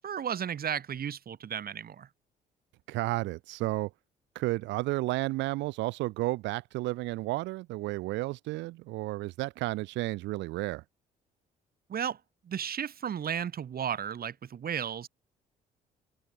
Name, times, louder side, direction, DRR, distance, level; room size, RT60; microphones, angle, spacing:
voice 1, 0.0-2.1 11.9-12.2 12.4-15.1, right 8 dB, 55° right, 6.5 m, -34 dB
voice 2, 2.9-3.9 4.3-10.8, right 19 dB, 85° right, 4.1 m, -32 dB
supercardioid pair, 65°, 18 cm